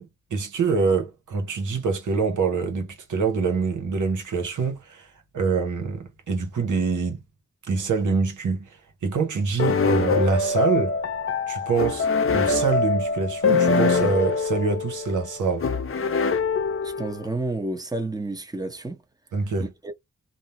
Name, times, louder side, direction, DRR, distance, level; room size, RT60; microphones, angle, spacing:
voice 1, 0.0-5.1 5.3-7.2 7.7-8.8 9.0-11.0 11.5-15.7 19.3-19.7, right 5 dB, 80° right, 0.9 m, -25 dB
sound 1, 9.6-17.3, left 4 dB, 45° left, 0.5 m, -23 dB
voice 2, 16.8-19.0 19.6-19.9, right 2 dB, 15° right, 0.8 m, -30 dB
2.5 x 2.0 x 2.8 m
cardioid pair, 45°, 30 cm